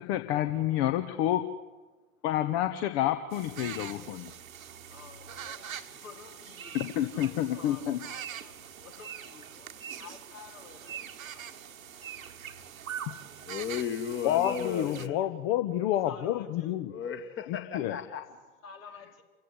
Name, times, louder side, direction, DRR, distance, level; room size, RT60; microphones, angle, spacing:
voice 1, 0.0-1.4 2.2-4.3 6.7-8.0 14.2-16.9 17.5-18.0, left 12 dB, 45° left, 1.5 m, -29 dB
sound 1, 3.3-15.1, right 8 dB, 70° right, 1.5 m, -43 dB
voice 2, 4.9-13.1 15.1-15.2 16.0-16.7 18.3-19.2, left 7 dB, 65° left, 4.7 m, -52 dB
voice 3, 13.5-15.2 16.9-18.3, left 7 dB, 30° left, 2.0 m, -35 dB
29.0 x 16.0 x 9.9 m
figure-of-eight pair, 85°, 42 cm